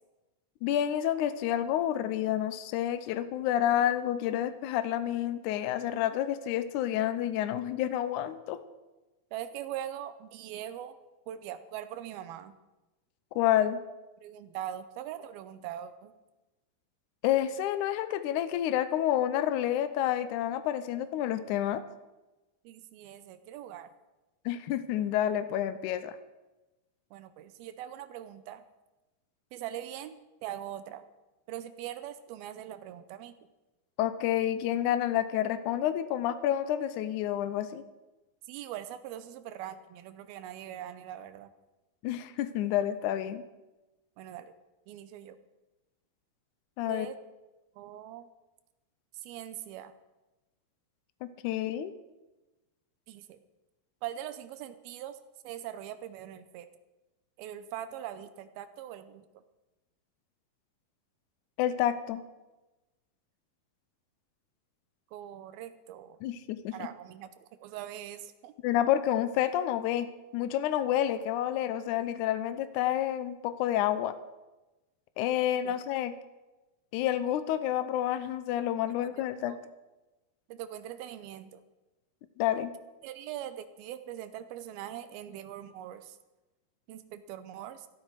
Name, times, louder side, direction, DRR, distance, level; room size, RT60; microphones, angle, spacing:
voice 1, 0.6-8.6 13.3-13.8 17.2-21.8 24.4-26.1 34.0-37.8 42.0-43.4 46.8-47.1 51.4-51.9 61.6-62.2 66.2-66.7 68.6-74.1 75.2-76.1 76.9-79.6 82.4-82.7, left 11 dB, 90° left, 12 dB, 1.7 m, -29 dB
voice 2, 9.3-11.0 11.3-12.6 14.2-16.1 22.6-23.9 27.1-28.6 29.5-30.2 30.4-31.0 31.5-33.4 38.5-41.5 44.2-44.5 44.9-45.4 46.9-47.2 47.8-48.3 49.1-49.9 53.1-53.4 54.0-55.2 55.4-56.7 57.4-59.3 65.1-66.2 66.7-67.3 67.6-68.5 75.6-75.7 78.9-79.1 79.5-79.6 80.5-81.6 83.0-86.2 86.9-87.9, right 11 dB, 85° right, 12 dB, 2.6 m, -41 dB
14.5 x 13.0 x 4.7 m, 1.1 s
omnidirectional pair, 4.3 m